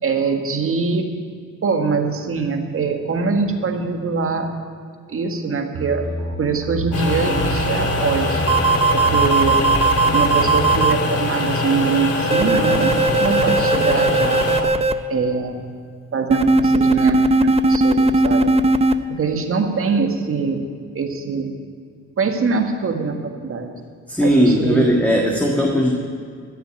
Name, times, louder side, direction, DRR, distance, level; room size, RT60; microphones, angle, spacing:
voice 1, 0.0-1.1 1.6-4.5 5.1-6.0 6.4-8.4 8.9-9.6 10.1-12.9 13.2-14.5 15.1-15.6 16.1-18.5 19.1-20.6 20.9-21.5 22.2-23.7 24.2-24.9, right 4 dB, 45° right, 4 dB, 1.7 m, -22 dB
sound 1, 5.7-10.8, right 2 dB, 80° right, 3.0 m, -28 dB
sound 2, 6.9-14.6, left 2 dB, 55° left, 2.4 m, -23 dB
sound 3, 8.5-10.9 12.3-14.9 16.3-18.9, right 3 dB, 20° right, 0.6 m, -17 dB
voice 2, 24.1-25.9, equal, 5° left, -1 dB, 1.7 m, -17 dB
14.5 x 6.8 x 10.0 m, 2.1 s
cardioid pair, 90°, 30 cm